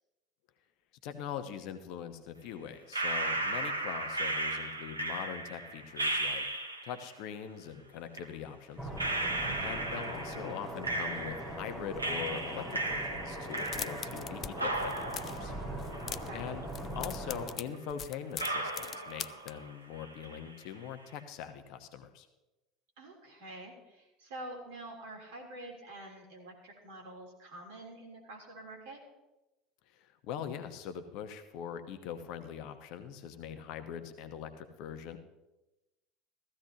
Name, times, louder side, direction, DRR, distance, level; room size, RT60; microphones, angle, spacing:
voice 1, 1.0-6.4 6.8-8.9 9.6-15.5 16.3-16.7 16.9-22.3 29.9-35.2, left 8 dB, 55° left, 9 dB, 1.0 m, -42 dB
Clapping schnippsen + coughing in stairwelll acoustics, 2.9-7.1 8.1-8.2 9.0-11.7 12.0-14.3 14.6-16.6 17.0-17.1 17.7-17.8 18.4-19.7 20.0-20.5, right 2 dB, 90° right, 1.0 m, -35 dB
sound 1, 8.8-17.6, right 1 dB, 10° right, 4.8 m, -41 dB
voice 2, 9.4-9.9 16.0-16.5 23.0-29.0, right 1 dB, 65° right, -1 dB, 3.4 m, -47 dB
sound 2, 13.5-14.5 14.8-15.4 15.8-16.4 16.7-19.5, left 9 dB, 40° left, 0.4 m, -41 dB
15.5 x 14.5 x 2.9 m, 1.0 s
figure-of-eight pair, 70°, 0 cm